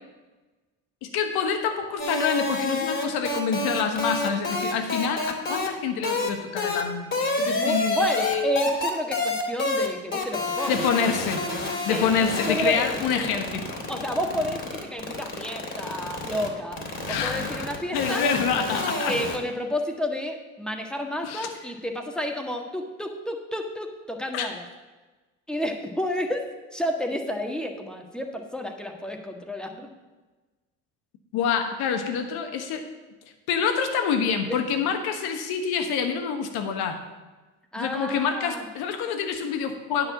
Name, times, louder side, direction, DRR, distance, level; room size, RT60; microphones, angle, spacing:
voice 1, 1.0-8.5 10.7-11.4 11.8-13.8 17.1-19.2 21.2-21.5 24.3-24.5 31.3-32.9 33.5-37.0 37.8-40.1, left 7 dB, 70° left, 6 dB, 1.4 m, -27 dB
sound 1, 2.0-5.7 6.0-6.3 6.6-6.8 7.1-9.9 10.1-19.4, left 2 dB, 30° left, 2.7 m, -28 dB
voice 2, 7.4-10.8 11.9-12.1 12.4-13.3 13.9-18.2 19.1-24.6 25.5-26.4 26.7-29.9 34.5-34.6 37.7-38.7, equal, ahead, 2 dB, 1.6 m, -30 dB
9.6 x 4.8 x 7.3 m, 1.2 s
hypercardioid pair, 65°, 39 cm